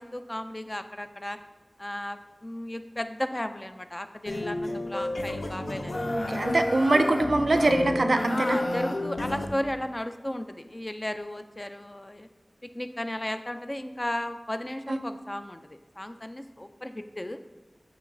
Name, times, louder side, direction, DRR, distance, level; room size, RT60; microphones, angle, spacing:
voice 1, 0.0-1.4 1.8-6.3 8.3-12.3 12.7-17.4, left 1 dB, 30° left, 9 dB, 0.3 m, -34 dB
sound 1, 4.3-9.5, left 1 dB, 75° left, 0.6 m, -30 dB
voice 2, 6.1-8.6 14.9-15.0, right 2 dB, 75° right, 7 dB, 0.4 m, -24 dB
8.6 x 3.1 x 3.8 m, 1.2 s
wide cardioid pair, 60°, 0 cm